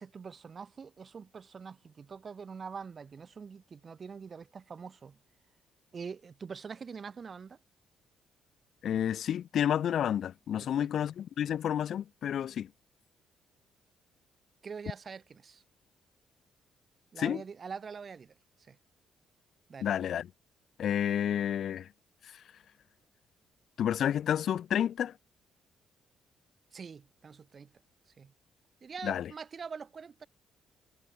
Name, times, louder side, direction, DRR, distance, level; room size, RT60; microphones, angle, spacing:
voice 1, 0.0-5.2 5.9-7.6 10.6-10.9 14.6-15.6 17.1-18.3 18.6-18.8 19.7-19.9 26.7-27.7 28.2-28.3 28.8-30.3, right 5 dB, 40° right, 2.8 m, -44 dB
voice 2, 8.8-12.7 17.2-17.4 19.8-20.3 20.8-21.9 22.2-22.4 23.8-25.2 29.0-29.3, left 9 dB, 65° left, 0.6 m, -30 dB
cardioid pair, 90°, 0 cm